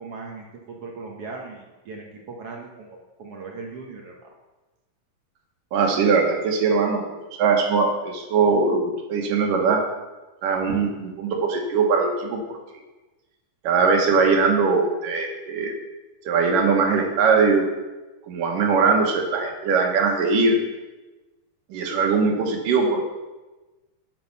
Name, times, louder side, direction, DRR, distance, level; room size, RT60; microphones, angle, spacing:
voice 1, 0.0-4.3, right 4 dB, 60° right, 0 dB, 1.7 m, -39 dB
voice 2, 5.7-7.0 7.3-8.8 9.1-9.8 10.4-12.6 13.6-15.7 16.3-17.7 18.3-20.6 21.7-23.0, right 4 dB, 80° right, 2 dB, 3.0 m, -21 dB
9.8 x 7.7 x 6.0 m, 1.1 s
omnidirectional pair, 3.8 m